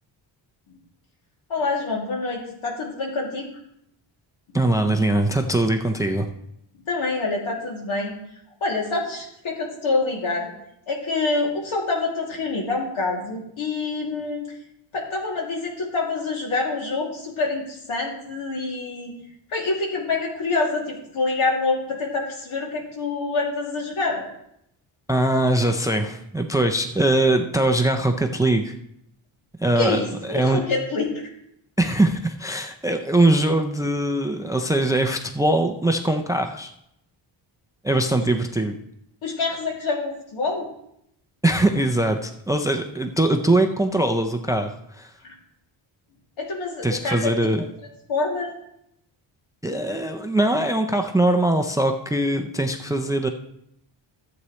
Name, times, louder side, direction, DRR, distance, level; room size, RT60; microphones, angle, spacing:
voice 1, 1.5-3.5 6.9-8.1 8.6-10.5 10.9-14.5 14.9-19.1 19.5-24.3 29.8-31.1 39.2-40.7 46.4-47.3 48.1-48.5, left 3 dB, 75° left, -1 dB, 2.8 m, -26 dB
voice 2, 4.5-6.3 25.1-28.7 29.6-30.6 31.8-36.7 37.8-38.8 41.4-45.1 46.8-47.6 49.6-53.3, right 1 dB, 10° right, 6 dB, 0.4 m, -22 dB
14.0 x 8.2 x 3.2 m, 0.76 s
wide cardioid pair, 160°, 48 cm